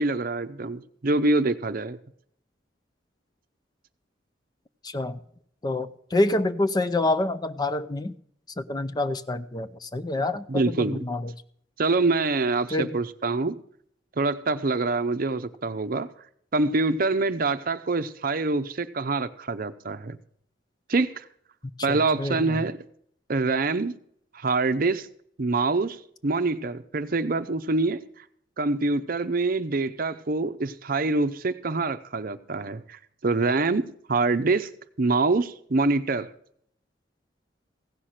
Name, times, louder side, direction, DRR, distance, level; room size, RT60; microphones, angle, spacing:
voice 1, 0.0-2.0 10.5-11.0 11.8-13.6 14.2-16.1 16.5-20.2 20.9-21.2 21.8-22.8 23.3-23.9 24.3-25.1 25.4-28.0 28.6-34.7 35.0-36.3, right 3 dB, 50° right, 0.6 m, -25 dB
voice 2, 4.8-5.2 5.6-8.1 8.6-11.3 12.7-12.9 21.9-22.6, left 2 dB, 20° left, 0.5 m, -27 dB
16.0 x 5.8 x 6.4 m
head